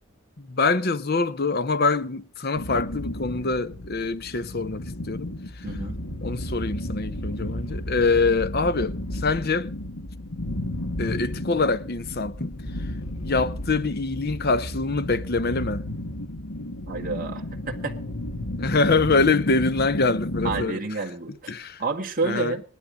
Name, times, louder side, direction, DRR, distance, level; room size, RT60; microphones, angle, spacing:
voice 1, 0.4-5.3 5.6-5.7 6.2-9.7 11.0-12.5 13.2-15.8 18.6-20.8 21.5-21.8 22.2-22.5, left 3 dB, 45° left, 0.8 m, -24 dB
sound 1, 2.5-20.6, left 1 dB, 75° left, 1.7 m, -33 dB
voice 2, 5.6-6.0 16.9-18.0 20.4-21.5 21.8-22.6, right 3 dB, 40° right, 1.8 m, -29 dB
18.5 x 11.5 x 5.1 m
head